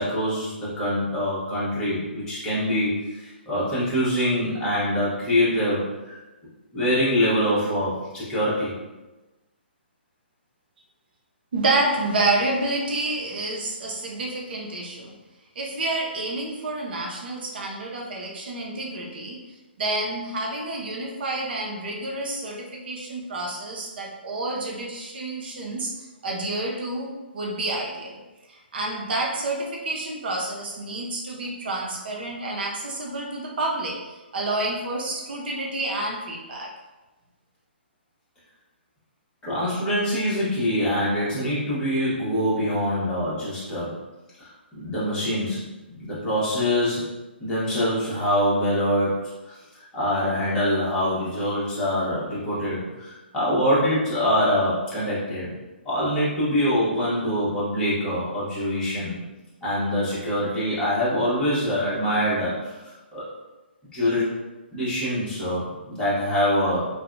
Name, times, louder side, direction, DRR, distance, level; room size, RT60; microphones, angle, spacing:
voice 1, 0.0-6.2 6.7-8.7 39.4-43.9 44.4-45.6 45.9-47.1 47.4-49.2 49.4-49.5 49.9-55.5 55.8-59.2 59.6-63.2 63.9-64.4 64.7-66.9, equal, 10° left, -11 dB, 1.1 m, -24 dB
voice 2, 11.5-15.1 15.6-19.4 19.8-28.2 28.5-36.7, right 2 dB, 60° right, -1 dB, 0.5 m, -29 dB
2.6 x 2.2 x 2.5 m, 1.1 s
hypercardioid pair, 140°, 6 cm